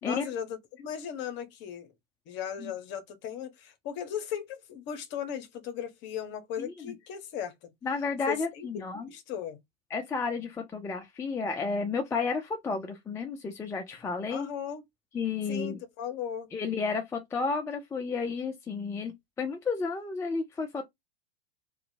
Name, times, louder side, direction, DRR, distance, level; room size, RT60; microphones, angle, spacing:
voice 1, 0.0-1.9 2.3-7.7 8.3-9.6 14.3-14.8 15.5-16.5, left 9 dB, 40° left, 0.8 m, -37 dB
voice 2, 7.8-9.1 9.9-14.5 15.1-15.8 16.5-20.9, left 4 dB, 10° left, 0.4 m, -32 dB
2.8 x 2.2 x 2.5 m
figure-of-eight pair, 90°, 30 cm